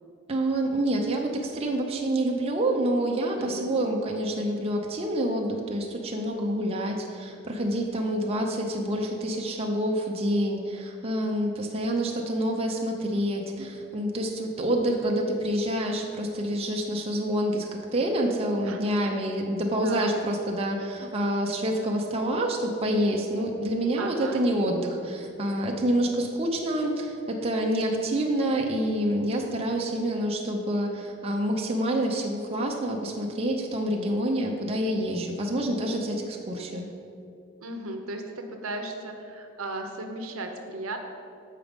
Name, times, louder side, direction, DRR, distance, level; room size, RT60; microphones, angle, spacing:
voice 1, 0.3-36.9, right 1 dB, 25° right, 0 dB, 0.6 m, -27 dB
voice 2, 3.3-3.8 18.6-19.1 19.8-20.1 24.0-24.4 37.6-41.0, right 2 dB, 70° right, 4 dB, 0.8 m, -36 dB
7.6 x 4.9 x 5.2 m, 2.6 s
head